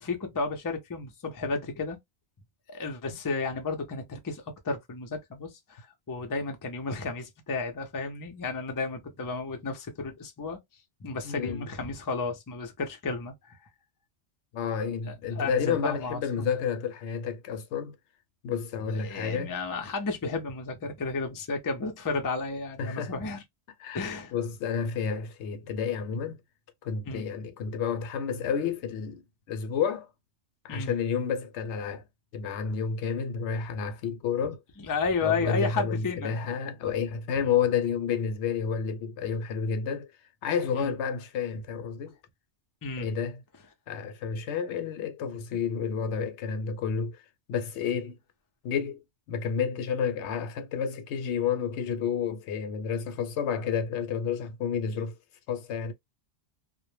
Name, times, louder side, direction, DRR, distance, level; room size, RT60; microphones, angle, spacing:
voice 1, 0.0-2.0 2.7-10.6 11.0-13.6 15.1-16.5 18.9-23.4 23.9-24.3 27.1-27.2 30.7-30.9 34.8-36.4 37.3-37.5 40.7-40.9 42.8-43.1, left 4 dB, 35° left, 0.3 m, -33 dB
voice 2, 11.2-11.6 14.5-18.0 18.4-19.5 22.8-23.1 23.8-26.4 26.8-29.2 29.5-30.1 30.6-32.0 32.3-34.6 35.2-40.1 40.4-42.2 43.0-43.4 43.9-47.2 47.5-48.2 48.6-55.2 55.5-55.9, left 6 dB, 80° left, 0.8 m, -30 dB
2.1 x 2.0 x 3.1 m
omnidirectional pair, 1.1 m